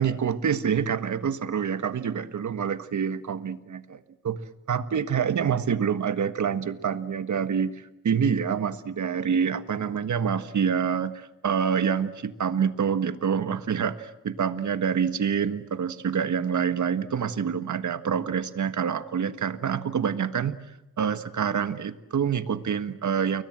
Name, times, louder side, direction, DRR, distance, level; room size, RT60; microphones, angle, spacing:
voice 1, 0.0-4.4 4.7-20.5 21.0-23.4, right 7 dB, 65° right, 11 dB, 1.7 m, -27 dB
30.0 x 22.0 x 7.6 m, 0.93 s
cardioid pair, 95°, 31 cm